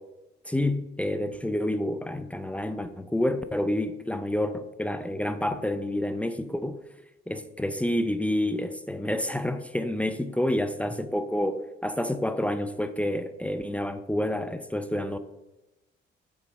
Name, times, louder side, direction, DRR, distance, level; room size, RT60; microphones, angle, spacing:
voice 1, 0.5-6.8 7.3-15.2, left 1 dB, 5° left, 10 dB, 0.5 m, -28 dB
6.9 x 4.5 x 5.3 m, 0.97 s
cardioid pair, 90°, 20 cm